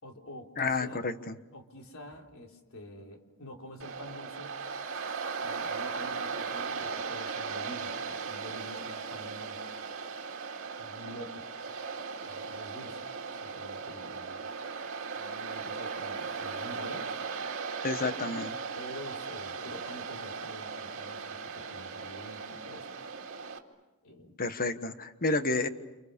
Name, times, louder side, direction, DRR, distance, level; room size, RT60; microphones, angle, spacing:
voice 1, 0.0-1.0 1.5-4.6 5.4-9.6 10.8-11.4 12.2-13.1 13.4-14.5 15.1-17.1 18.0-18.2 18.8-22.9 24.0-24.4, equal, 65° left, 2 dB, 3.8 m, -47 dB
voice 2, 0.6-1.3 17.8-18.5 24.4-25.7, left 3 dB, 40° left, 10 dB, 1.4 m, -30 dB
Waves surf, 3.8-23.6, right 5 dB, 60° right, 2.4 m, -38 dB
30.0 x 28.5 x 6.9 m, 1.1 s
head